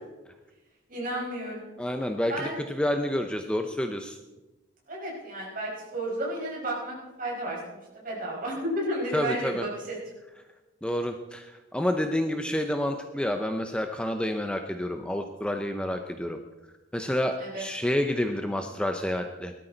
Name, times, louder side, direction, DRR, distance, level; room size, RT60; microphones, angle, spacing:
voice 1, 0.9-1.7 2.3-2.6 4.9-10.0 17.4-17.6, right 1 dB, 45° right, -3 dB, 5.4 m, -32 dB
voice 2, 1.8-4.2 9.1-9.6 10.8-16.4 16.9-19.5, left 1 dB, 5° left, 5 dB, 0.6 m, -29 dB
18.0 x 13.0 x 4.0 m, 1.1 s
head